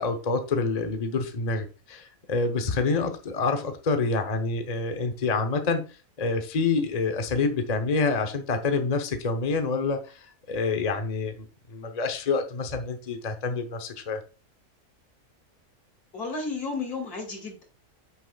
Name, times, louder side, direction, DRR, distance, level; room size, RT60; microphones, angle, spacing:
voice 1, 0.0-5.8 6.2-14.2, left 4 dB, 30° left, 6 dB, 0.8 m, -27 dB
voice 2, 16.1-17.6, left 4 dB, 80° left, 2 dB, 3.1 m, -32 dB
9.4 x 6.7 x 2.4 m, 0.33 s
omnidirectional pair, 1.6 m